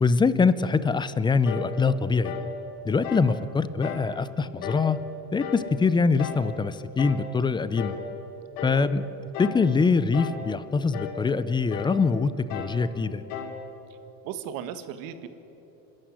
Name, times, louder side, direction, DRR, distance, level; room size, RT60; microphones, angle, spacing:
voice 1, 0.0-2.3 2.8-5.0 5.3-8.0 8.6-9.0 9.4-13.2, left 4 dB, 10° left, 15 dB, 0.5 m, -24 dB
sound 1, 1.4-1.7 2.2-2.5 3.0-3.3 3.8-4.1 4.6-4.9 5.4-5.7 6.2-6.5 7.0-7.3 7.8-8.1 8.6-8.9 9.3-9.7 10.1-10.5 10.9-11.2 11.7-12.0 12.5-12.8 13.3-13.6, left 6 dB, 80° left, 3.1 m, -35 dB
voice 2, 14.2-15.3, right 9 dB, 60° right, 10 dB, 1.7 m, -36 dB
27.5 x 13.0 x 9.7 m, 3.0 s
cardioid pair, 145°, 39 cm